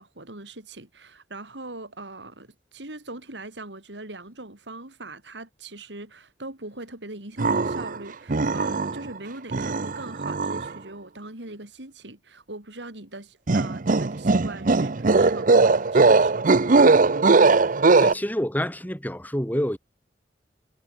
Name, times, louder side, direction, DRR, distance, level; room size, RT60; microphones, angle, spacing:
voice 1, 0.0-17.0, right 2 dB, 90° right, 4.5 m, -41 dB
sound 1, 7.4-8.0 8.3-9.1 9.5-10.7 13.5-18.1, right 3 dB, 50° right, 0.8 m, -19 dB
voice 2, 18.0-19.8, equal, 10° left, 6.2 m, -27 dB
head